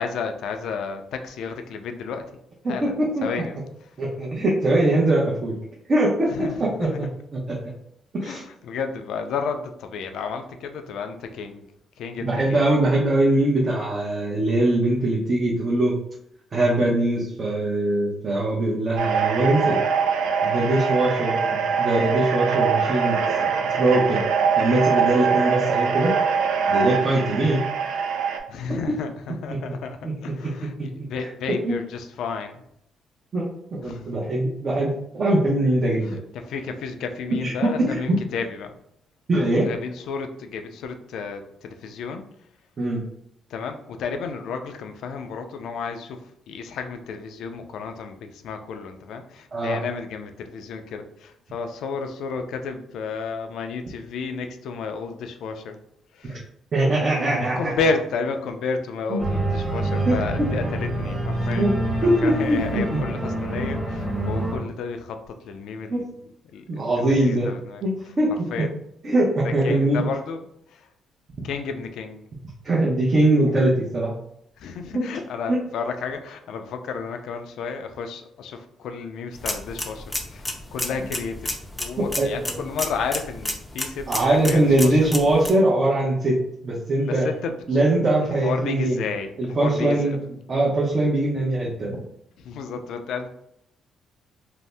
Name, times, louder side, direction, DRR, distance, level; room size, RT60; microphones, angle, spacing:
voice 1, 0.0-2.3 2.7-2.9 3.2-3.6 6.3-7.0 8.2-11.7 12.0-12.7 28.5-30.0 30.2-32.6 33.8-34.0 36.4-38.7 39.6-42.2 43.5-46.2 46.5-55.8 56.1-56.4 57.3-61.7 62.2-65.2 65.5-66.1 66.5-67.8 68.5-68.7 69.4-70.4 71.4-72.2 74.6-80.4 80.7-81.5 81.8-85.0 87.1-87.6 88.4-90.2 92.4-93.3, left 5 dB, 80° left, 7 dB, 0.3 m, -32 dB
voice 2, 2.6-3.5 4.0-5.6 5.9-6.9 7.3-7.6 8.1-8.4 12.2-15.9 16.5-19.8 20.4-24.2 24.6-26.1 26.7-27.6 28.7-28.8 29.3-29.6 30.0-30.3 31.2-31.8 33.3-36.2 37.4-38.2 39.3-39.7 42.8-43.0 49.5-49.8 56.7-57.9 59.1-59.2 60.1-60.5 61.6-61.7 62.0-63.0 65.9-66.0 66.7-67.5 67.8-68.7 69.0-70.0 72.6-74.1 74.9-75.1 75.5-75.6 82.0-82.6 84.1-86.4 86.6-87.3 87.7-89.0 89.4-90.2 90.5-92.0, right 1 dB, 40° right, -5 dB, 0.7 m, -22 dB
sound 1, 19.0-28.4, right 6 dB, 85° right, 0.3 m, -23 dB
Organ, 59.2-64.6, right 1 dB, 15° right, 1.0 m, -26 dB
sound 2, 79.3-85.5, left 1 dB, 10° left, 0.4 m, -32 dB
2.6 x 2.0 x 3.3 m, 0.76 s
cardioid pair, 90°, 0 cm